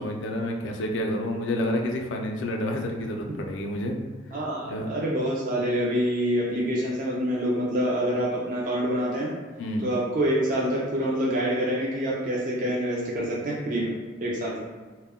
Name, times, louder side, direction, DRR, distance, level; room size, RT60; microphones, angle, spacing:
voice 1, 0.0-4.0 4.7-4.9 9.6-9.9, left 1 dB, 75° left, 2 dB, 0.4 m, -29 dB
voice 2, 4.3-9.3 9.8-13.9 14.2-14.6, equal, 45° right, -5 dB, 0.4 m, -26 dB
2.1 x 2.1 x 3.4 m, 1.4 s
head